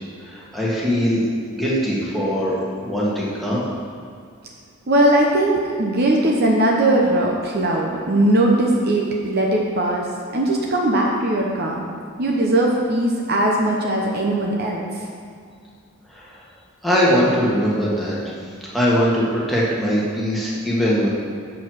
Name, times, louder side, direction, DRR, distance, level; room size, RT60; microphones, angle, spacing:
voice 1, 0.2-3.7 16.1-16.4 16.8-18.2 18.7-21.1, equal, ahead, -7 dB, 1.5 m, -21 dB
voice 2, 4.9-10.0 10.3-11.9 12.2-14.8, right 1 dB, 45° right, -1 dB, 0.8 m, -19 dB
7.6 x 4.6 x 6.3 m, 2.3 s
head